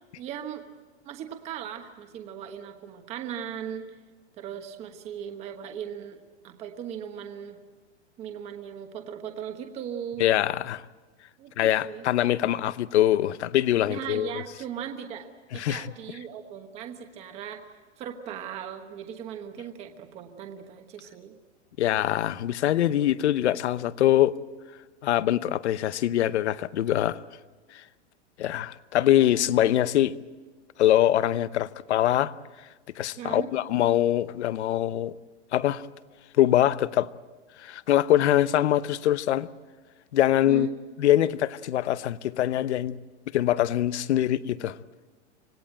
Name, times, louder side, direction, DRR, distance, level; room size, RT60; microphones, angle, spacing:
voice 1, 0.2-0.6 1.0-4.0 4.4-7.6 8.2-10.2 11.4-12.1 13.9-17.7 18.0-21.3 33.2-33.5 40.5-40.8, right 9 dB, 20° right, 1.2 m, -38 dB
voice 2, 10.2-10.8 11.6-14.3 15.5-15.8 21.8-24.4 25.0-27.2 28.4-30.2 30.8-32.3 33.0-35.1 35.5-35.9 36.3-37.1 37.6-39.5 40.1-40.7 41.0-43.0 43.3-44.8, left 12 dB, 70° left, 0.9 m, -23 dB
26.0 x 18.0 x 8.9 m
supercardioid pair, 170°, 35 cm